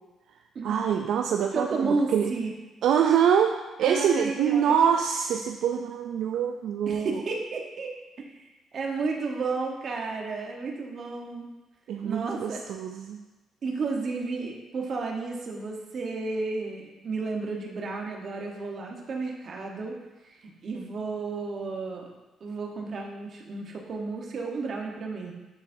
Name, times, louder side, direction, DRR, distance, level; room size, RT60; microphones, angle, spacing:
voice 1, 0.6-2.3 2.8-7.2 11.9-13.2, right 8 dB, 80° right, 4 dB, 0.3 m, -25 dB
voice 2, 1.5-2.5 3.8-4.7 6.9-8.3 8.7-11.5 12.0-12.6 13.6-19.9 20.6-22.1 22.4-25.3, right 3 dB, 55° right, 0 dB, 1.1 m, -32 dB
9.1 x 4.1 x 2.6 m, 1.1 s
cardioid pair, 90°, 0 cm